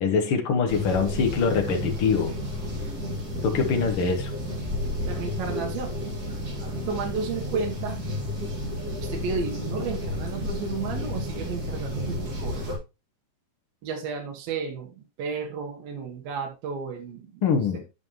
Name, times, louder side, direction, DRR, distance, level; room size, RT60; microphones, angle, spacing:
voice 1, 0.0-2.3 3.4-4.3 17.4-17.8, left 5 dB, 80° left, 3 dB, 1.2 m, -24 dB
sound 1, 0.7-12.8, left 1 dB, 30° right, 2.3 m, -31 dB
voice 2, 5.0-5.9 6.3-8.0 9.0-12.6 13.8-17.5, right 5 dB, 90° right, 2 dB, 3.3 m, -33 dB
11.0 x 5.5 x 3.1 m, 0.27 s
omnidirectional pair, 4.1 m